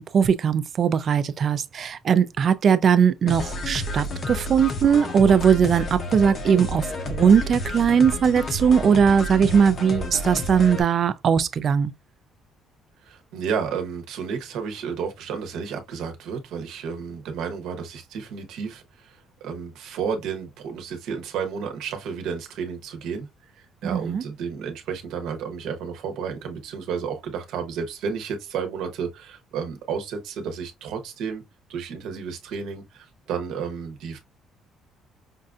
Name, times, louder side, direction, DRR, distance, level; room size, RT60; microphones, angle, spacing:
voice 1, 0.0-11.9 23.9-24.2, right 7 dB, 35° right, 0.4 m, -20 dB
sound 1, 3.3-10.8, left 1 dB, 35° left, 0.6 m, -31 dB
voice 2, 13.0-31.4 31.7-34.2, right 6 dB, 75° right, 1.0 m, -32 dB
5.3 x 2.5 x 2.3 m
cardioid pair, 165°, 0 cm